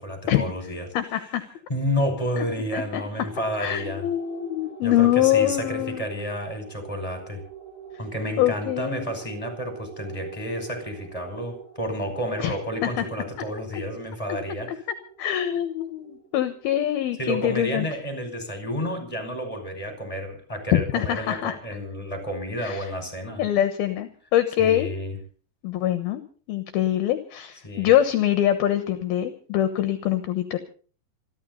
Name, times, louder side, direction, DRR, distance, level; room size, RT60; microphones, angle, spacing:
voice 1, 0.0-0.9 1.7-4.1 4.8-7.4 8.0-14.8 17.2-23.5 24.6-25.2 27.6-27.9, equal, 5° left, 5 dB, 5.5 m, -30 dB
voice 2, 0.9-1.4 2.4-2.5 2.7-3.0 3.6-6.1 8.4-9.1 12.4-12.5 12.8-12.9 15.2-17.9 20.7-21.5 22.6-22.8 23.4-24.9 25.6-26.2 26.5-30.6, left 12 dB, 70° left, 9 dB, 2.7 m, -24 dB
sound 1, 3.2-18.0, right 7 dB, 75° right, 8.6 m, -45 dB
27.0 x 12.5 x 4.1 m, 0.41 s
omnidirectional pair, 5.1 m